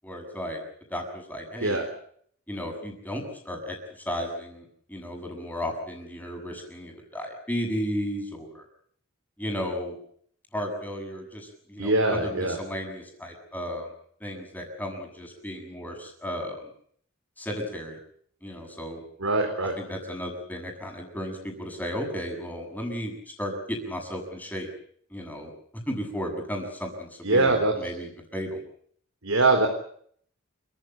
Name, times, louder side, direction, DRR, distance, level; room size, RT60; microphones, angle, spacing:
voice 1, 0.0-0.6 0.9-1.9 2.5-8.6 9.4-10.0 10.5-13.9 14.2-16.7 17.4-18.0 18.4-19.0 19.8-24.7 25.1-25.5 25.9-28.6, equal, 10° left, 3 dB, 7.2 m, -34 dB
voice 2, 11.8-12.6 19.2-19.7 27.2-27.7 29.2-29.7, right 2 dB, 90° right, 4 dB, 4.0 m, -22 dB
28.5 x 15.5 x 9.1 m, 0.62 s
head